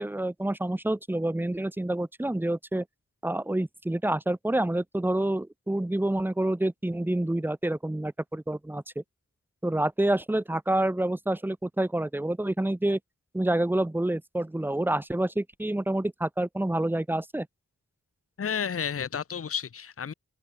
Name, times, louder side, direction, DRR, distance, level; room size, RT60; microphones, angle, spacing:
voice 1, 0.0-2.8 3.2-9.0 9.6-13.0 13.3-17.5, right 1 dB, 5° right, 0.4 m, -28 dB
voice 2, 18.4-20.1, left 7 dB, 45° left, 0.6 m, -31 dB
wide cardioid pair, 40°, 32 cm